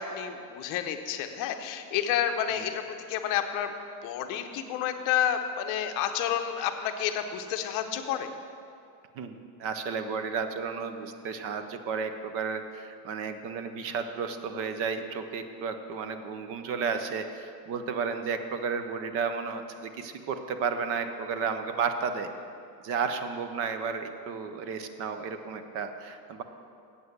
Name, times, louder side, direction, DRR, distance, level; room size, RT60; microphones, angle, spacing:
voice 1, 0.0-3.7 4.0-8.3, left 9 dB, 40° left, 6 dB, 0.7 m, -30 dB
voice 2, 9.1-22.3 22.8-26.4, right 5 dB, 30° right, 8 dB, 0.4 m, -33 dB
8.1 x 7.8 x 7.8 m, 2.4 s
cardioid pair, 170°, 48 cm